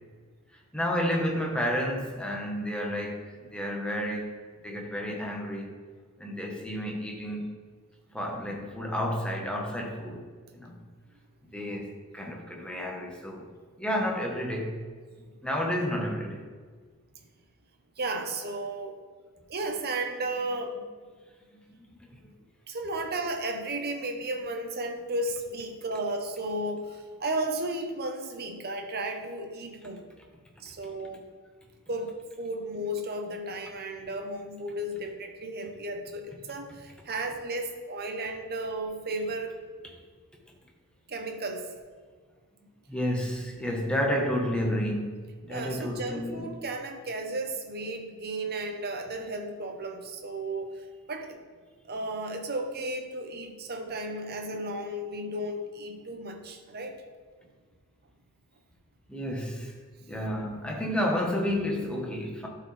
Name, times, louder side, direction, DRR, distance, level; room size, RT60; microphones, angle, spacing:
voice 1, 0.7-4.3 4.6-5.7 6.2-7.4 8.1-10.2 10.5-10.7 11.5-13.5 13.8-14.8 15.4-16.5 21.8-22.2 42.9-46.4 59.1-59.7 60.0-62.5, equal, 5° left, -1 dB, 1.2 m, -31 dB
voice 2, 18.0-18.9 19.5-20.8 22.7-30.0 30.6-31.3 31.9-32.1 32.4-39.5 41.1-41.7 45.5-51.4 51.8-56.9, right 1 dB, 45° right, 4 dB, 1.0 m, -34 dB
12.0 x 4.8 x 3.4 m, 1.5 s
head